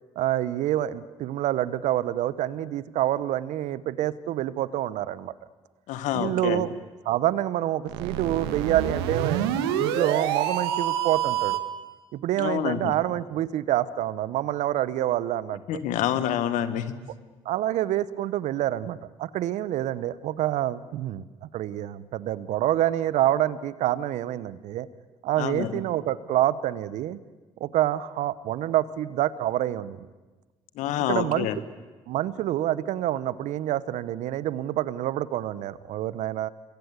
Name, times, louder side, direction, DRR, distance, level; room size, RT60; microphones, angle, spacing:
voice 1, 0.2-5.3 6.1-6.7 7.0-9.5 9.8-11.6 12.1-15.8 17.4-24.9 25.2-27.2 27.6-30.1 31.1-31.5 32.1-36.5, right 13 dB, 70° right, 18 dB, 1.0 m, -27 dB
voice 2, 5.9-6.6 12.4-12.9 15.7-16.9 25.4-25.8 30.8-31.6, left 11 dB, 75° left, 13 dB, 1.7 m, -27 dB
sound 1, 7.9-11.8, right 10 dB, 85° right, 1.7 m, -27 dB
26.5 x 22.5 x 8.3 m, 1.2 s
hypercardioid pair, 50°, 13 cm